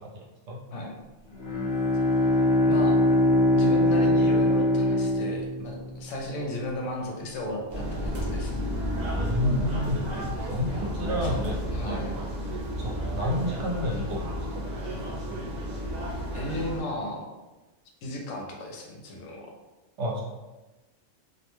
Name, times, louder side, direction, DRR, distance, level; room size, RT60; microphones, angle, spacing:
Bowed string instrument, 1.3-6.0, left 1 dB, 60° left, 0.9 m, -22 dB
voice 1, 2.6-3.0 3.5-8.5 11.2-11.4 11.7-12.2 16.3-17.2 18.0-19.5, left 1 dB, 85° left, 1 dB, 0.9 m, -35 dB
sound 1, 7.7-16.8, equal, 50° right, 0.5 m, -32 dB
voice 2, 9.1-10.0 10.5-12.0 12.8-14.4 20.0-20.2, left 1 dB, 70° right, -3 dB, 0.9 m, -29 dB
2.4 x 2.1 x 3.0 m, 1.1 s
omnidirectional pair, 1.3 m